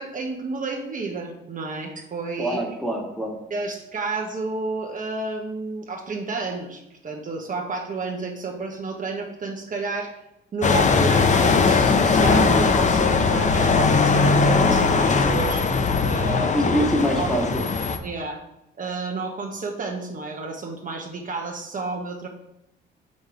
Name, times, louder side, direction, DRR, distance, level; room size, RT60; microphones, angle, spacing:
voice 1, 0.0-2.6 3.5-10.1 10.5-15.8 16.0-16.7 17.2-17.3 18.0-18.4 18.8-22.3, right 3 dB, 40° right, 1 dB, 1.2 m, -31 dB
voice 2, 2.4-3.4 16.5-17.6, equal, ahead, 1 dB, 1.7 m, -24 dB
sound 1, 10.6-18.0, left 4 dB, 40° left, 0.8 m, -19 dB
6.3 x 5.4 x 4.9 m, 0.87 s
cardioid pair, 90°, 20 cm